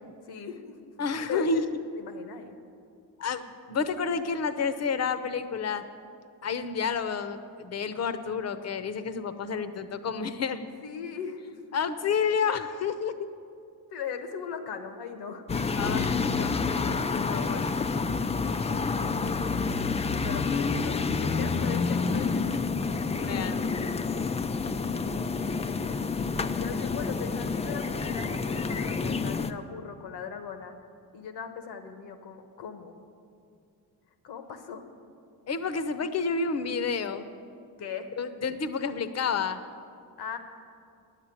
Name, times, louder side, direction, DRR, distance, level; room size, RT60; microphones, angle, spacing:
voice 1, 0.2-0.9 1.3-1.6 2.0-2.5 10.8-11.8 13.9-15.4 20.2-22.7 26.4-30.7 31.1-33.0 34.2-34.8 37.8-38.1 40.2-40.4, left 7 dB, 80° left, 7 dB, 1.2 m, -39 dB
voice 2, 1.0-1.6 3.2-3.4 3.7-5.8 6.4-10.7 11.7-13.3 15.8-16.7 17.1-17.6 23.2-23.6 35.5-37.3 38.2-39.6, left 5 dB, 40° left, 11 dB, 0.8 m, -30 dB
sound 1, 15.5-29.5, left 4 dB, 15° left, 0.4 m, -28 dB
9.8 x 8.3 x 8.5 m, 2.5 s
cardioid pair, 95°, 38 cm